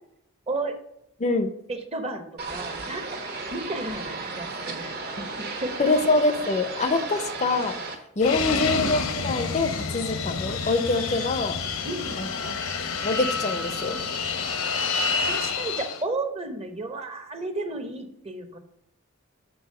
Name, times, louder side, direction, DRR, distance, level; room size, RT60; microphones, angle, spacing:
voice 1, 0.5-0.8 1.7-3.2 3.5-5.7 8.5-8.9 11.8-12.6 15.3-18.6, right 2 dB, 30° right, 6 dB, 0.9 m, -33 dB
voice 2, 1.2-1.5 5.8-7.8 8.2-11.6 12.2-12.3 13.0-14.0, left 3 dB, 35° left, 9 dB, 0.5 m, -25 dB
sound 1, 2.4-7.9, right 3 dB, 50° right, 1.2 m, -34 dB
Fixed-wing aircraft airplane, 8.2-16.0, left 4 dB, 70° left, 0.8 m, -28 dB
6.9 x 4.0 x 6.5 m, 0.78 s
head